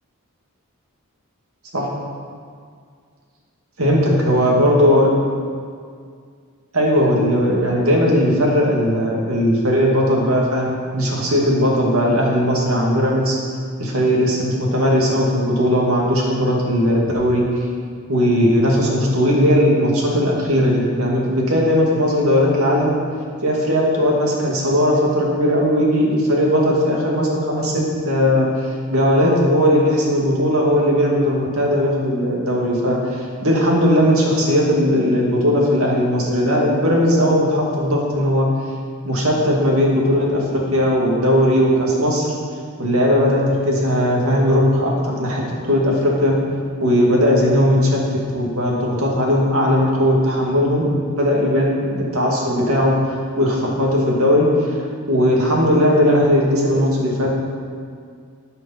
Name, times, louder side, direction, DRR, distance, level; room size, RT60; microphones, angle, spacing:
voice 1, 3.8-5.1 6.7-13.4 13.8-17.4 18.1-22.9 23.4-38.5 39.0-42.3 42.8-46.3 46.8-48.0 48.3-50.8 51.2-54.5 55.1-57.3, equal, 70° right, -3 dB, 2.3 m, -18 dB
13.0 x 5.7 x 5.8 m, 2.1 s
head